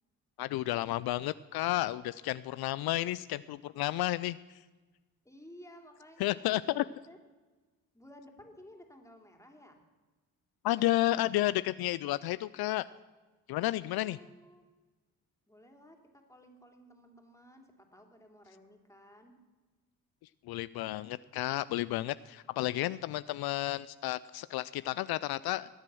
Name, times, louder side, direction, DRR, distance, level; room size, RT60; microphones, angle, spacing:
voice 1, 0.4-4.6 6.2-6.8 10.6-12.9 13.5-14.2 20.5-25.7, left 16 dB, 75° left, 16 dB, 0.5 m, -32 dB
voice 2, 5.2-7.2 7.9-9.8 13.8-14.6 15.5-19.4, equal, 10° left, 3 dB, 3.0 m, -55 dB
21.0 x 7.6 x 6.2 m, 1.3 s
supercardioid pair, 65°, 38 cm